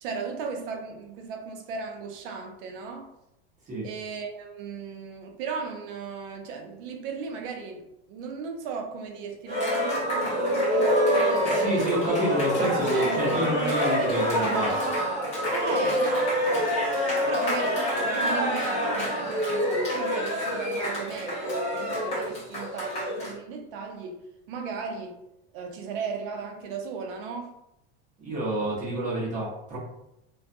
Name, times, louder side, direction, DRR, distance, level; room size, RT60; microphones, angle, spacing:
voice 1, 0.0-3.1 3.8-11.9 12.6-13.8 14.1-16.7 17.3-24.2 24.5-25.2 25.5-27.5, right 5 dB, 55° right, 4 dB, 0.5 m, -36 dB
Cheering, 9.5-23.3, equal, 20° left, 0.8 m, -26 dB
voice 2, 11.4-14.7 28.2-29.8, right 1 dB, 25° right, -7 dB, 0.9 m, -28 dB
2.4 x 2.3 x 2.5 m, 0.86 s
supercardioid pair, 170°, 32 cm